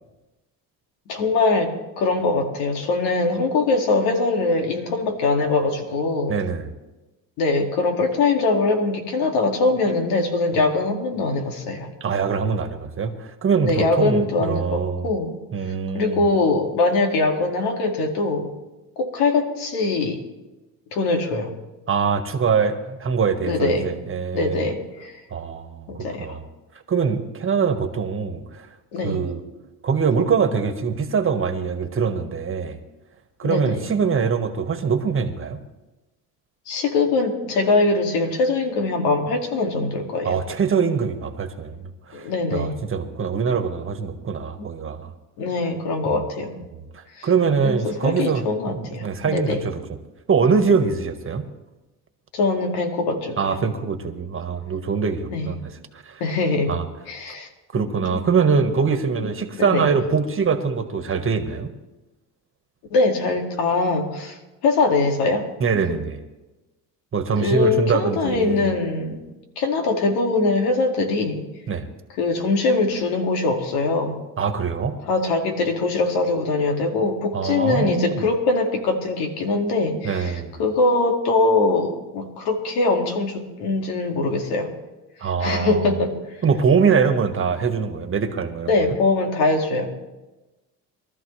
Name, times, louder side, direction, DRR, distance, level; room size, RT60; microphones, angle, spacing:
voice 1, 1.1-6.3 7.4-11.9 13.5-15.4 15.9-18.5 19.0-20.2 20.9-21.5 23.4-23.9 24.3-25.2 25.9-26.4 28.9-29.2 33.4-33.9 36.7-40.4 42.1-42.7 44.6-44.7 45.4-46.6 47.2-47.3 47.6-49.7 52.3-53.6 55.3-55.5 56.2-56.7 57.1-57.5 57.7-57.8 58.1-58.2 59.6-59.9 62.9-64.4 64.6-65.5 67.3-69.2 69.6-71.4 72.2-74.2 75.1-84.7 85.4-86.2 88.7-89.9, left 3 dB, 80° left, 3 dB, 2.4 m, -22 dB
voice 2, 6.3-6.7 12.0-15.1 15.5-16.2 21.9-24.7 25.3-26.4 26.9-28.7 29.0-29.4 29.8-32.8 33.4-35.6 40.2-42.2 42.5-45.1 46.0-46.1 46.7-49.8 50.3-51.4 53.4-55.7 56.0-56.2 56.7-56.8 57.7-61.7 65.6-66.2 67.1-68.7 71.7-71.9 74.4-75.0 77.3-78.2 80.0-80.5 85.2-85.9 86.4-89.0, right 5 dB, 35° right, 7 dB, 1.6 m, -23 dB
23.0 x 13.0 x 3.3 m, 1.1 s
cardioid pair, 100°, 38 cm